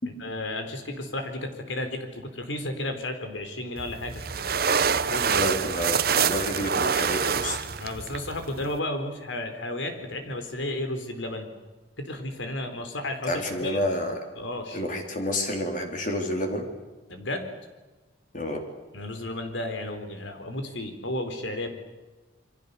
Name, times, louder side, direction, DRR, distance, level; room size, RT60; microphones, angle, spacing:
voice 1, 0.1-4.8 5.1-5.3 7.8-11.5 12.0-13.8 14.4-14.8 17.1-17.5 18.9-21.7, left 1 dB, 90° left, 7 dB, 4.3 m, -33 dB
sound 1, 3.8-8.8, right 6 dB, 55° right, 1.0 m, -26 dB
voice 2, 5.3-7.6 13.2-14.2 14.7-16.7 18.3-18.6, left 1 dB, 45° left, 3 dB, 4.0 m, -29 dB
28.5 x 24.5 x 7.0 m, 1.2 s
head